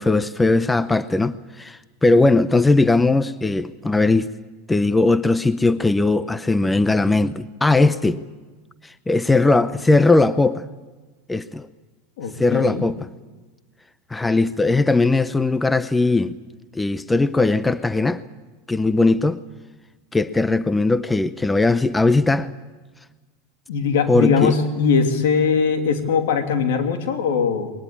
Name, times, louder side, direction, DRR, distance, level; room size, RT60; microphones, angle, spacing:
voice 1, 0.0-4.3 4.7-8.2 8.8-10.6 11.3-11.7 12.4-13.1 14.1-16.4 16.7-18.2 18.7-19.4 20.1-22.5 24.1-24.5, left 3 dB, 10° left, 0.6 m, -19 dB
voice 2, 12.2-12.8 23.7-27.7, left 5 dB, 75° left, 2.8 m, -20 dB
21.0 x 20.0 x 8.7 m
supercardioid pair, 125°, 0 cm